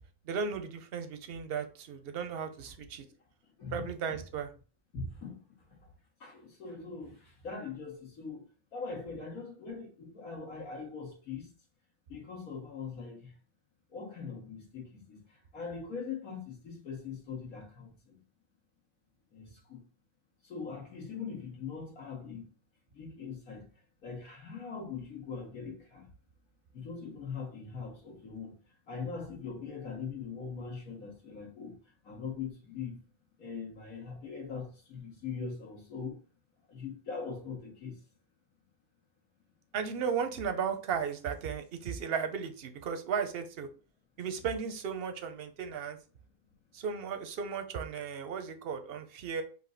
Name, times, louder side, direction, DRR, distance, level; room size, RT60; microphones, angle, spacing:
voice 1, 0.2-3.0 3.7-4.5 39.7-43.7 44.2-46.0 46.7-49.4, right 6 dB, 55° right, 0.7 m, -35 dB
voice 2, 3.6-4.2 4.9-5.4 6.2-8.4 8.7-11.5 12.1-13.3 13.9-15.2 15.5-18.2 19.3-19.8 20.4-22.5 22.9-23.6 24.0-26.1 26.7-28.5 28.9-31.8 32.0-33.0 33.4-36.2 36.7-38.0, left 5 dB, 75° left, 2.1 m, -41 dB
5.0 x 2.7 x 3.8 m
omnidirectional pair, 1.5 m